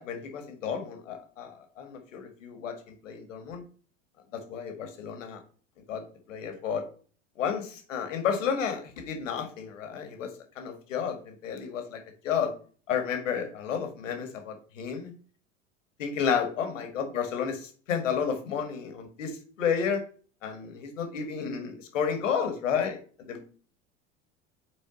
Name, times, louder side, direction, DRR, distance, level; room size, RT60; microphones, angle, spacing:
voice 1, 0.0-3.6 4.3-5.4 5.9-6.8 7.4-12.5 12.9-15.1 16.0-20.0 20.4-23.4, left 7 dB, 85° left, 6 dB, 1.7 m, -32 dB
6.1 x 4.1 x 3.9 m, 0.40 s
hypercardioid pair, 90°, 37 cm